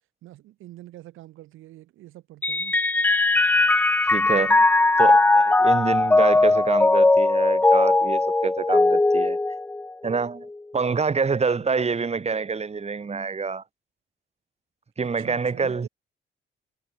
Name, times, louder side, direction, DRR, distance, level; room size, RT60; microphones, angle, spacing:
voice 1, 0.2-2.8 11.6-11.8 15.0-15.8, right 15 dB, 90° right, 4.2 m, -45 dB
Mallet percussion, 2.4-10.2, left 2 dB, 10° left, 0.3 m, -19 dB
voice 2, 4.1-4.6 5.0-9.4 10.0-10.5 10.7-13.6 15.0-15.9, right 5 dB, 30° right, 3.5 m, -26 dB
cardioid pair, 90°, 20 cm